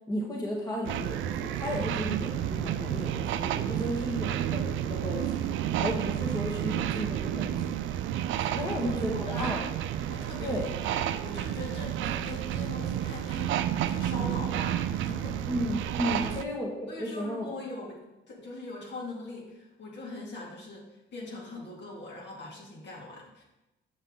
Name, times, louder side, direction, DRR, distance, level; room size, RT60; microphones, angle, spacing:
voice 1, 0.1-5.5 5.7-7.7 8.5-9.6 10.4-10.7 15.5-17.5, equal, 20° left, -2 dB, 1.4 m, -33 dB
sound 1, 0.8-16.4, right 11 dB, 75° right, 0.4 m, -31 dB
voice 2, 8.6-9.6 10.1-10.9 11.2-13.5 13.9-15.5 16.1-16.3 16.9-23.4, left 2 dB, 65° left, -3 dB, 2.3 m, -42 dB
7.4 x 5.8 x 3.8 m, 0.98 s
cardioid pair, 90°, 20 cm